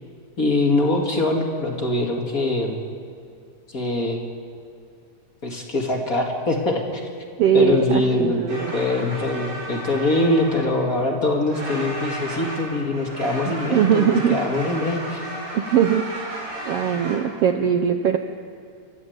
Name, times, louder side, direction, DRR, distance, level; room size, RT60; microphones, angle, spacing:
voice 1, 0.4-2.8 3.7-4.2 5.4-7.0 7.5-15.2, left 2 dB, 30° left, 0 dB, 1.9 m, -23 dB
voice 2, 7.4-8.7 13.5-14.4 15.5-16.0 16.6-18.2, right 8 dB, 90° right, 7 dB, 1.3 m, -20 dB
sound 1, 8.5-11.1 11.4-17.2, right 1 dB, 70° right, 6.7 m, -34 dB
27.5 x 12.5 x 7.9 m, 2.4 s
omnidirectional pair, 3.8 m